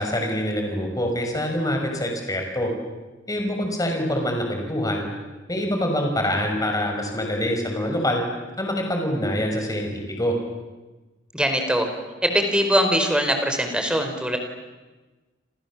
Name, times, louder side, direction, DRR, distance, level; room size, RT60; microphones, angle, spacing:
voice 1, 0.0-2.7 3.3-5.1 5.5-8.2 8.6-10.4, equal, 20° left, 2 dB, 5.7 m, -25 dB
voice 2, 11.3-11.9 12.2-14.4, equal, 5° right, 5 dB, 4.6 m, -22 dB
29.0 x 27.5 x 7.4 m, 1.2 s
head